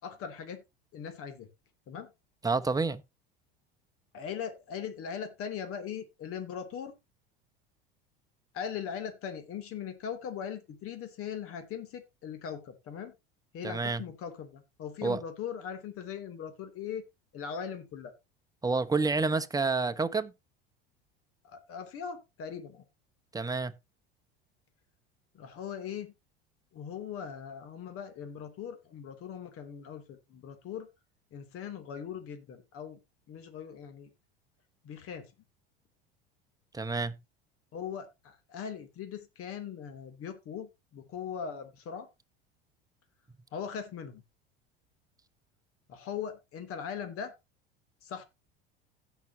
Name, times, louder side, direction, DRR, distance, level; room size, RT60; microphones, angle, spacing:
voice 1, 0.0-0.6 0.9-1.5 1.9-2.1 4.1-6.9 8.5-13.1 13.5-17.0 17.3-18.1 21.4-22.8 25.3-26.1 26.7-30.9 31.3-33.0 33.3-34.1 34.8-35.3 37.7-42.1 43.5-44.2 45.9-47.3 48.0-48.2, left 7 dB, 50° left, 3.0 m, -40 dB
voice 2, 2.4-3.0 13.6-14.0 15.0-15.2 18.6-20.3 23.3-23.7 36.7-37.2, right 4 dB, 10° right, 1.2 m, -29 dB
16.5 x 6.3 x 2.9 m
hypercardioid pair, 80°, 29 cm